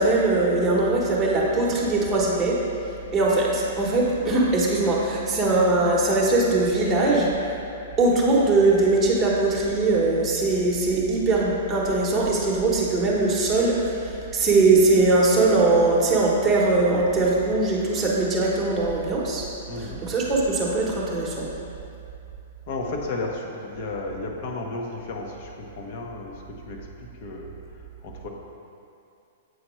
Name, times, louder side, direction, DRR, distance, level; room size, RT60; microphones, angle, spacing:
voice 1, 0.0-2.6 3.1-7.3 8.0-13.9 14.3-19.4 19.8-21.5, right 2 dB, 15° right, -5 dB, 1.0 m, -21 dB
voice 2, 19.7-20.1 22.7-26.3 26.7-26.8 27.2-27.5 28.0-28.3, left 2 dB, 45° left, 1 dB, 0.8 m, -33 dB
7.7 x 4.3 x 3.1 m, 2.6 s
hypercardioid pair, 155°, 0 cm